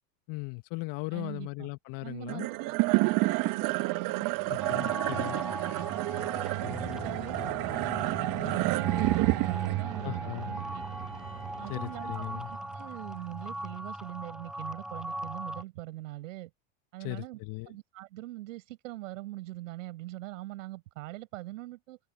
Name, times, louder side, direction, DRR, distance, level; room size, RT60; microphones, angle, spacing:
voice 1, 0.3-2.5 4.5-5.4 10.0-10.5 11.7-12.5 17.0-17.7, left 26 dB, 55° left, 1.4 m, -38 dB
voice 2, 1.1-1.7 2.0-4.4 4.7-5.5 5.9-10.8 11.6-16.5 16.9-17.4 17.7-22.0, right 17 dB, 75° right, 6.1 m, -42 dB
sound 1, 2.3-12.8, right 21 dB, 55° right, 1.7 m, -30 dB
sound 2, 4.6-15.6, right 1 dB, ahead, 0.5 m, -40 dB
sound 3, 6.6-12.6, left 7 dB, 20° left, 1.5 m, -46 dB
open air
hypercardioid pair, 90°, 39 cm